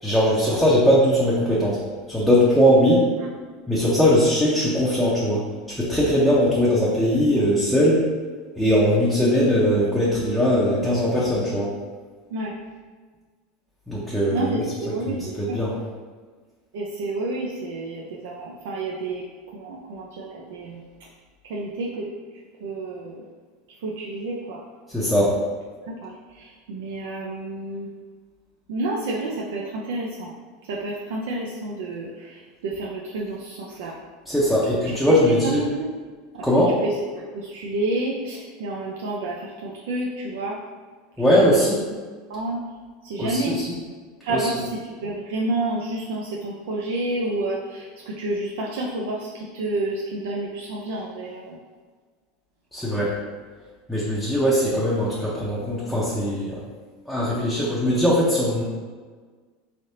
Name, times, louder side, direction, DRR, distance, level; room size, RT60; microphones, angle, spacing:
voice 1, 0.0-1.8 2.1-3.1 3.7-5.4 5.8-8.0 8.6-11.7 13.9-14.6 15.1-15.7 24.9-25.4 34.3-35.6 36.4-36.8 41.2-41.8 43.2-43.7 44.3-44.5 52.7-53.1 53.9-56.6 57.1-58.6, equal, ahead, -7 dB, 0.6 m, -20 dB
voice 2, 14.3-15.6 16.7-19.2 19.5-20.8 21.4-22.1 22.6-23.2 23.8-24.6 25.9-27.9 28.7-30.3 30.6-34.0 34.8-35.9 36.3-36.4 36.8-40.6 41.4-41.5 42.3-42.6 43.0-43.6 44.2-51.6, right 2 dB, 85° right, -3 dB, 0.5 m, -30 dB
3.8 x 3.4 x 2.7 m, 1.5 s
supercardioid pair, 145°, 0 cm